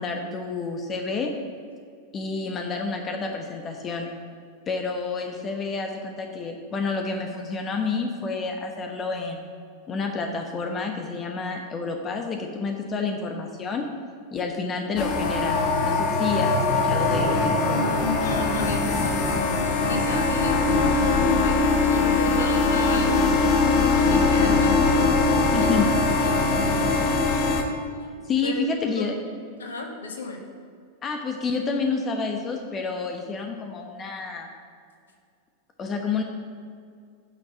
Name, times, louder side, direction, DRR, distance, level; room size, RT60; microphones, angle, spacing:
voice 1, 0.0-1.4 2.1-4.1 4.7-9.4 9.9-13.8 14.3-18.3 25.5-25.9 28.2-29.2 31.0-34.5 35.8-36.2, left 4 dB, 25° left, 3 dB, 1.1 m, -29 dB
sound 1, 15.0-27.6, left 3 dB, 40° left, 1.3 m, -21 dB
voice 2, 17.6-23.5 23.9-25.9 26.2-27.2 28.4-28.6 29.0-29.1 29.6-30.4, left 3 dB, 65° left, 3 dB, 1.6 m, -33 dB
8.9 x 6.4 x 8.4 m, 2.2 s
figure-of-eight pair, 90°, 0 cm